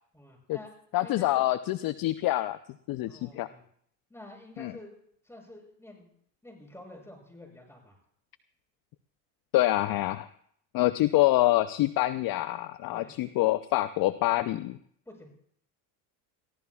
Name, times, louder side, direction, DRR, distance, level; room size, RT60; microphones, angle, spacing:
voice 1, 0.1-0.7 1.0-1.4 3.1-3.6 4.1-4.9 5.2-6.1 6.4-8.0 12.9-13.1 15.1-15.3, left 1 dB, 5° left, 0 dB, 7.3 m, -48 dB
voice 2, 0.9-2.6 2.9-3.5 4.6-4.7 9.5-10.3 10.7-14.8, left 16 dB, 50° left, 13 dB, 0.6 m, -26 dB
22.5 x 15.5 x 2.4 m, 0.64 s
supercardioid pair, 85°, 47 cm